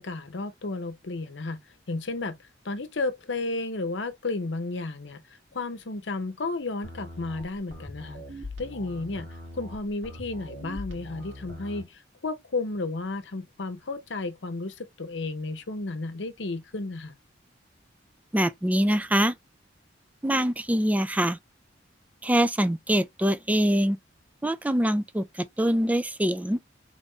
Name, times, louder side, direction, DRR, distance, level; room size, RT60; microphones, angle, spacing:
voice 1, 0.0-1.6 1.9-5.2 5.5-8.2 8.6-9.3 9.5-17.2, left 3 dB, 70° left, 0.8 m, -33 dB
sound 1, 6.8-11.9, left 1 dB, 70° right, 2.0 m, -41 dB
voice 2, 18.3-19.3 20.2-21.4 22.2-24.0 24.4-26.6, equal, 10° right, 0.4 m, -24 dB
3.6 x 2.6 x 3.6 m
head